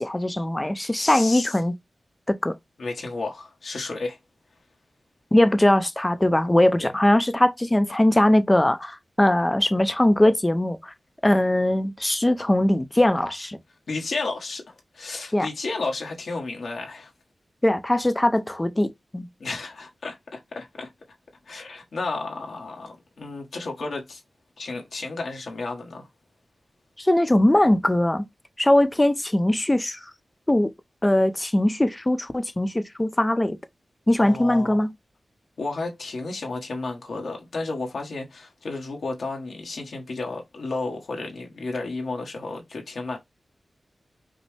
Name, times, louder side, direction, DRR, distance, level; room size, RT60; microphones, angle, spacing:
voice 1, 0.0-1.7 2.3-2.6 5.3-10.9 11.2-13.6 15.3-15.5 17.6-19.3 27.0-28.3 28.6-30.1 30.5-30.7 31.0-33.6 34.1-34.9, left 1 dB, 15° left, 0.5 m, -21 dB
voice 2, 0.9-1.5 2.8-4.2 6.8-6.9 13.9-17.1 19.4-20.9 21.5-24.2 24.6-26.1 34.2-34.9 35.6-43.2, left 3 dB, 85° left, 1.1 m, -32 dB
5.2 x 2.1 x 3.1 m
wide cardioid pair, 100°, 0 cm